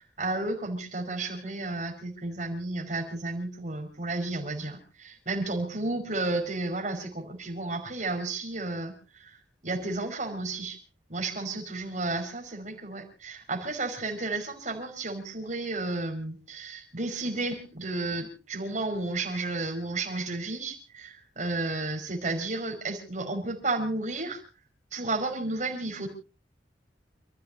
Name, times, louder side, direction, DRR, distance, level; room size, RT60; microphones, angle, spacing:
voice 1, 0.0-10.8 11.1-24.4 24.9-26.1, right 2 dB, 40° right, 2 dB, 5.2 m, -32 dB
29.5 x 13.5 x 2.7 m, 0.33 s
head